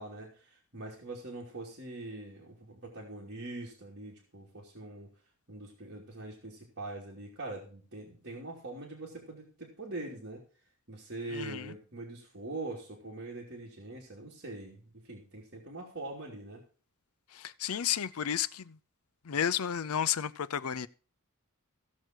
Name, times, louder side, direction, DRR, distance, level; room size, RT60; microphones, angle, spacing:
voice 1, 0.0-5.1 5.5-10.4 10.9-16.6, right 2 dB, 55° right, 2.8 m, -43 dB
voice 2, 11.3-11.6 17.4-18.7 19.3-20.9, left 9 dB, 75° left, 0.5 m, -32 dB
16.0 x 6.5 x 4.5 m
head